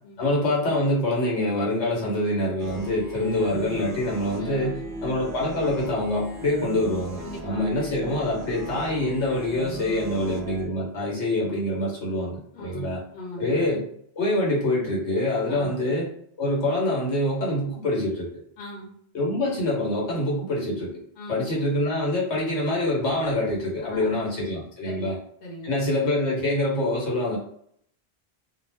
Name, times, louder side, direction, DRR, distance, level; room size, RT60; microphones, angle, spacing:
voice 1, 0.2-13.0 13.4-13.8 14.2-16.1 16.4-18.3 19.1-21.0 21.3-25.1 25.6-27.4, left 1 dB, 85° left, -4 dB, 1.3 m, -25 dB
sound 1, 2.6-10.7, right 1 dB, 60° right, 0.7 m, -38 dB
voice 2, 4.4-5.0 7.2-7.8 9.9-10.2 12.5-13.6 15.5-15.8 18.6-18.9 21.2-21.5 23.8-24.2 24.8-25.8, equal, 55° left, -2 dB, 0.9 m, -39 dB
2.5 x 2.0 x 3.2 m, 0.65 s
omnidirectional pair, 1.1 m